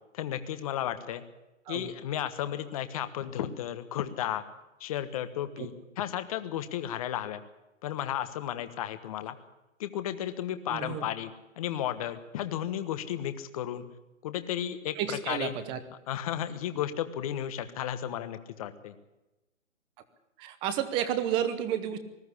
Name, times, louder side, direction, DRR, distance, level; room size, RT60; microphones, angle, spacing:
voice 1, 0.1-1.2 1.7-4.4 4.8-7.4 7.8-9.3 9.8-11.3 11.6-13.8 14.2-15.5 16.1-18.9, left 11 dB, 25° left, 10 dB, 1.3 m, -33 dB
voice 2, 10.7-11.1 14.9-15.8 20.4-22.0, right 10 dB, 15° right, 11 dB, 1.0 m, -31 dB
20.0 x 13.5 x 9.9 m, 1.0 s
hypercardioid pair, 155°, 39 cm